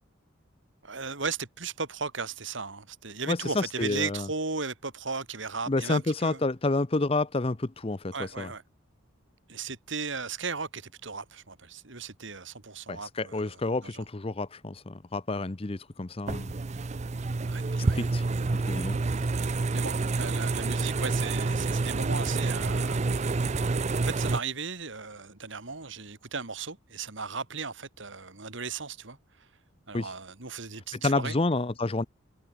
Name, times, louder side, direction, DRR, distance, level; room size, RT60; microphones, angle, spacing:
voice 1, 0.8-6.4 8.1-8.6 9.5-14.0 17.4-18.1 19.7-23.1 24.0-29.2 29.9-31.4, right 4 dB, 65° right, 2.4 m, -36 dB
voice 2, 3.3-4.3 5.7-8.5 12.9-16.5 17.9-18.2 18.7-19.0 29.9-30.1 30.9-32.1, left 2 dB, 30° left, 0.7 m, -29 dB
sound 1, 16.3-24.4, right 3 dB, 35° right, 0.5 m, -28 dB
head